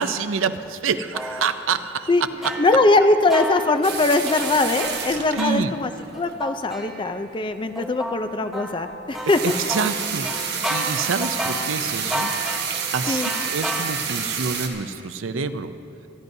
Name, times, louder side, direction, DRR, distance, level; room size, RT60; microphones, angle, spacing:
voice 1, 0.0-2.1 2.4-2.5 5.3-5.7 9.4-12.3 12.7-15.7, right 5 dB, 80° right, 11 dB, 0.5 m, -27 dB
sound 1, 1.1-1.5 2.4-5.5 6.1-7.4 7.8-14.3, right 1 dB, ahead, 1.0 m, -32 dB
voice 2, 2.6-5.9 6.2-9.5 13.1-13.3, left 2 dB, 25° left, 9 dB, 0.4 m, -21 dB
sound 2, 3.8-6.3 9.1-14.7, right 6 dB, 55° right, 1.1 m, -29 dB
26.5 x 10.5 x 2.7 m, 2.9 s
head